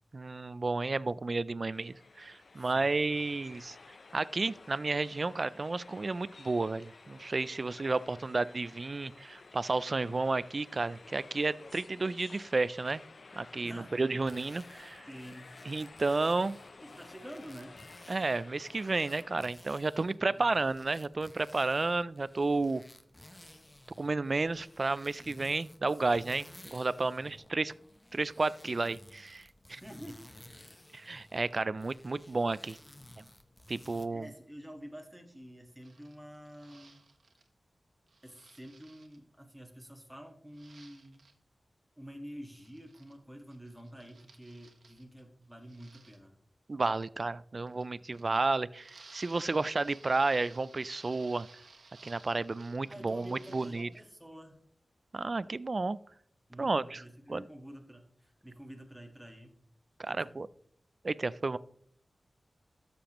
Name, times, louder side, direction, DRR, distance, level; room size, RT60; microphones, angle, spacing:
voice 1, 0.1-3.8 4.1-13.0 13.4-15.0 15.7-16.6 18.1-22.8 24.0-27.7 28.1-29.8 30.9-32.8 33.2-33.3 33.7-34.3 46.7-51.5 52.0-53.9 55.1-56.0 56.6-57.0 57.3-57.4 60.0-60.5 61.0-61.6, right 3 dB, 50° right, 19 dB, 0.3 m, -32 dB
sound 1, 1.7-19.4, left 3 dB, 65° left, 0.5 m, -54 dB
voice 2, 2.6-3.1 3.3-3.5 13.6-14.0 15.1-15.6 16.8-17.8 20.3-20.5 27.3-27.5 29.8-30.2 34.1-37.0 38.2-41.2 42.0-46.3 52.9-54.6 56.5-59.5 60.0-60.3, equal, 5° right, 1 dB, 1.6 m, -49 dB
sound 2, 14.1-34.1, left 1 dB, 20° left, 0.8 m, -55 dB
sound 3, 35.8-37.5 38.1-39.2 40.5-41.3 42.5-43.1 43.4-45.2 45.6-46.2 47.7-48.4 48.7-54.0, right 4 dB, 85° right, 1.2 m, -57 dB
12.5 x 6.9 x 3.0 m, 0.66 s
cardioid pair, 55°, 0 cm